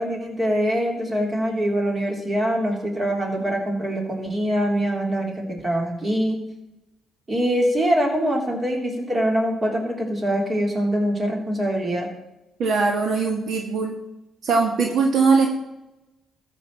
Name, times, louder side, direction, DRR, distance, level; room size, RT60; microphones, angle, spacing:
voice 1, 0.0-6.4 7.3-12.1, equal, 30° right, 1 dB, 3.3 m, -23 dB
voice 2, 12.6-14.0 14.4-15.5, right 4 dB, 65° right, 2 dB, 1.7 m, -20 dB
13.5 x 5.5 x 7.4 m, 0.95 s
cardioid pair, 90°, 0 cm